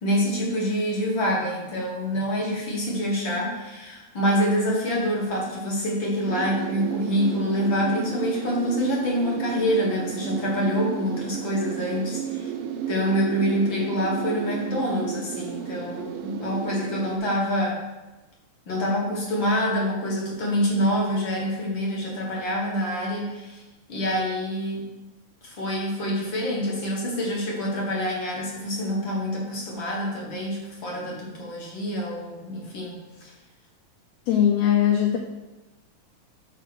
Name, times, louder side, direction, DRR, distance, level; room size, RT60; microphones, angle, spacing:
voice 1, 0.0-12.5 12.9-17.8 18.7-23.6 23.9-24.9 25.4-32.9 33.2-33.3, equal, 55° left, -2 dB, 1.5 m, -26 dB
sound 1, 6.2-17.2, right 9 dB, 90° right, 1.4 m, -33 dB
voice 2, 34.3-35.2, left 10 dB, 80° left, 2 dB, 1.5 m, -20 dB
4.9 x 4.5 x 6.1 m, 1.1 s
omnidirectional pair, 3.5 m